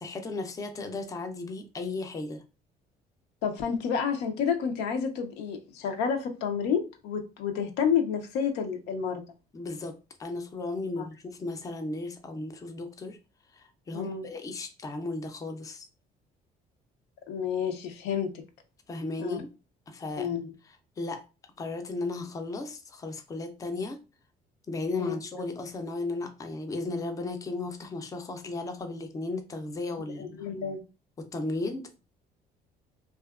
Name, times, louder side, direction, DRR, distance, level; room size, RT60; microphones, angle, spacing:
voice 1, 0.0-2.4 9.5-13.2 13.5-15.9 18.9-19.5 19.9-20.3 21.0-21.2 21.6-24.0 24.7-30.5 31.2-32.0, left 3 dB, 20° left, 0.4 m, -35 dB
voice 2, 3.4-9.2 11.0-11.1 13.9-14.2 17.3-18.3 19.2-19.4 20.2-20.5 25.0-25.2 30.2-30.8, left 7 dB, 85° left, 0.5 m, -30 dB
2.7 x 2.3 x 2.3 m
cardioid pair, 110°, 17 cm